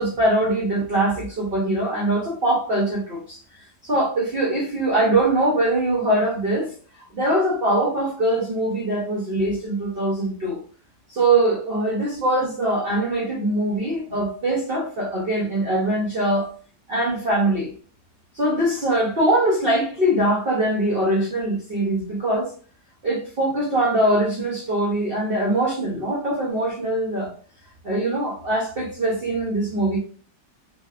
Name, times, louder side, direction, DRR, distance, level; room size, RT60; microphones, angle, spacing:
voice 1, 0.0-3.4 3.8-6.7 7.1-10.6 11.1-16.5 16.9-17.7 18.3-22.5 23.0-27.3 27.8-30.0, right 1 dB, 75° right, 0.5 m, -22 dB
2.9 x 2.1 x 2.3 m
omnidirectional pair, 1.8 m